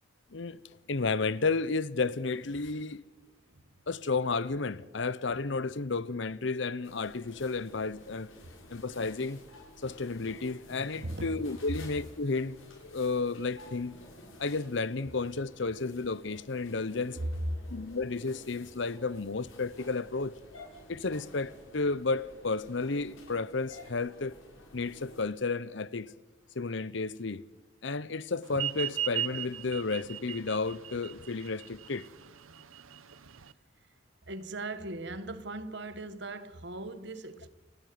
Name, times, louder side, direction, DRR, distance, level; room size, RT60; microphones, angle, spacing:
voice 1, 0.9-3.0 3.9-8.3 8.7-9.4 9.8-12.6 12.8-13.9 14.4-17.2 17.7-20.3 20.9-24.3 24.7-26.1 26.5-27.4 27.8-32.1, left 3 dB, 60° left, 0.8 m, -32 dB
voice 2, 3.2-3.8 11.0-11.4 34.3-37.5, right 2 dB, 55° right, 1.5 m, -40 dB
sound 1, 6.8-25.2, left 1 dB, 80° left, 6.6 m, -52 dB
sound 2, 28.5-33.5, right 11 dB, 85° right, 0.9 m, -36 dB
30.0 x 11.5 x 9.5 m
head